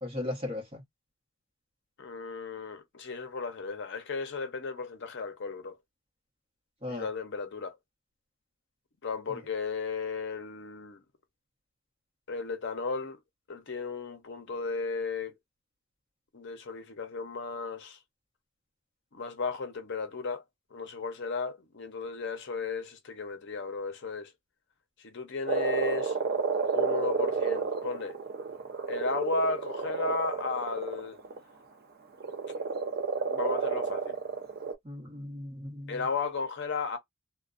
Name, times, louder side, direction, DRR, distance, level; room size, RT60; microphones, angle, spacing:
voice 1, 0.0-0.8 6.8-7.1 9.3-9.4 34.8-36.0, left 2 dB, 25° right, 0.9 m, -37 dB
voice 2, 2.0-5.8 6.9-7.8 9.0-11.0 12.3-13.2 13.5-15.3 16.3-18.0 19.1-20.4 20.7-24.3 25.0-26.2 26.7-28.2 28.9-31.2 33.2-34.2 35.9-37.0, left 4 dB, 55° left, 0.6 m, -34 dB
Frog, 25.5-31.4 32.2-34.8, right 5 dB, 45° right, 0.5 m, -31 dB
2.5 x 2.1 x 2.4 m
head